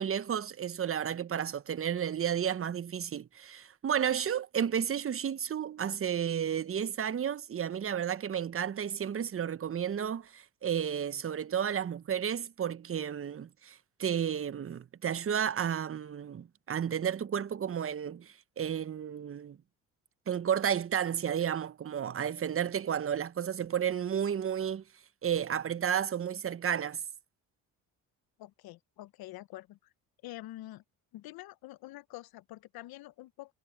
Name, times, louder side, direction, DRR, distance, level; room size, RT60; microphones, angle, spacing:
voice 1, 0.0-19.6 20.3-24.8 25.2-27.0, right 8 dB, 35° right, 0.9 m, -32 dB
voice 2, 28.4-29.9 30.2-30.8 31.1-33.5, left 16 dB, 70° left, 0.9 m, -46 dB
supercardioid pair, 70°, 38 cm